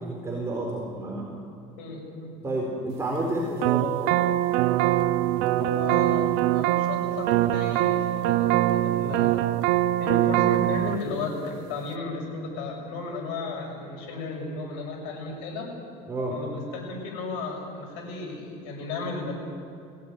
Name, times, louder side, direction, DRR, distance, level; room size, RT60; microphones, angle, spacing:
voice 1, 0.1-1.4 2.4-4.2 16.1-16.4, right 1 dB, 15° right, -2 dB, 4.0 m, -30 dB
voice 2, 1.8-2.3 5.6-6.3 6.5-9.3 10.0-15.7 16.3-19.3, left 3 dB, 90° left, 0 dB, 7.1 m, -34 dB
sound 1, 3.6-11.0, right 15 dB, 80° right, 0.8 m, -23 dB
22.5 x 17.0 x 9.4 m, 2.5 s
cardioid pair, 125°, 16 cm